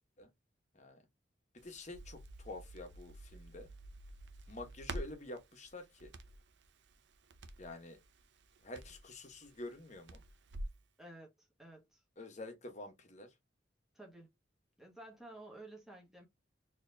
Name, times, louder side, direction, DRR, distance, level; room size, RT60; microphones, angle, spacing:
voice 1, 1.6-3.7 4.5-6.1 7.6-8.0 8.6-10.2 12.2-13.3, left 2 dB, 40° left, 1.1 m, -48 dB
Crackle, 1.6-10.8, right 1 dB, 70° right, 0.6 m, -49 dB
voice 2, 11.0-12.0 13.9-14.3 14.8-16.3, right 1 dB, ahead, 1.5 m, -53 dB
4.2 x 3.1 x 2.7 m
head